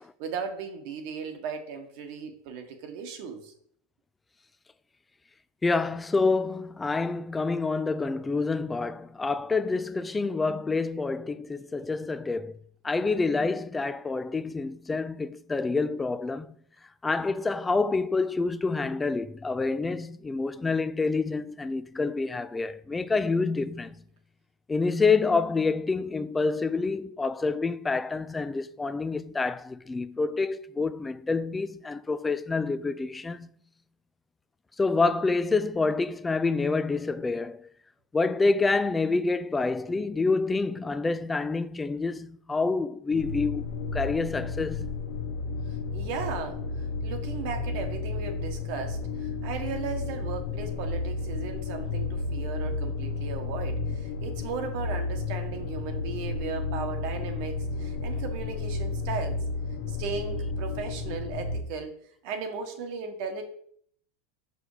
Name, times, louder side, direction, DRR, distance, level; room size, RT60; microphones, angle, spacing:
voice 1, 0.2-3.5 45.7-59.4 59.9-61.9 62.2-63.4, right 5 dB, 65° right, 1.5 m, -36 dB
voice 2, 5.6-12.6 12.8-16.5 17.0-24.0 24.7-33.5 34.8-37.7 38.1-43.7 43.9-44.9, left 3 dB, 15° left, 0.4 m, -27 dB
sound 1, 43.1-61.6, left 3 dB, 75° left, 1.2 m, -32 dB
5.7 x 5.0 x 5.0 m
supercardioid pair, 115°, 0 cm